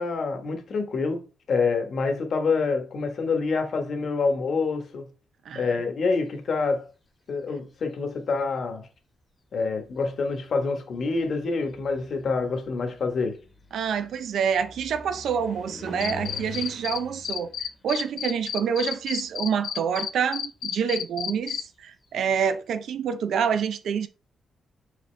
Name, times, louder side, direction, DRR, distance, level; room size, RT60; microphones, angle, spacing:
voice 1, 0.0-5.1 5.5-6.9 7.3-8.9 9.5-13.4, left 4 dB, 50° left, 1.3 m, -27 dB
sound 1, 7.4-8.0 9.0-9.1 9.6-19.5 19.8-22.4, left 3 dB, 20° left, 1.2 m, -46 dB
voice 2, 13.7-17.5 17.8-24.1, right 7 dB, 70° right, 0.6 m, -27 dB
Cricket, 16.0-17.0 17.2-21.6, left 9 dB, 90° left, 0.6 m, -30 dB
6.5 x 5.1 x 3.3 m
wide cardioid pair, 150°, 0 cm